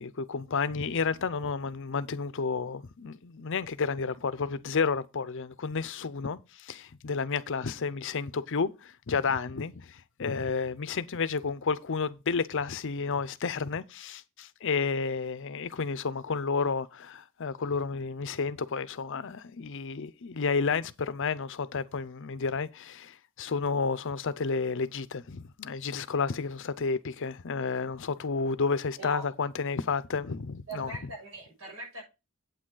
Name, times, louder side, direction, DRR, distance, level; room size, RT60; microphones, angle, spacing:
voice 1, 0.0-30.9, left 5 dB, 60° left, 0.6 m, -31 dB
voice 2, 29.0-29.3 30.7-32.0, right 1 dB, 65° right, 6.7 m, -41 dB
8.8 x 8.4 x 3.9 m
head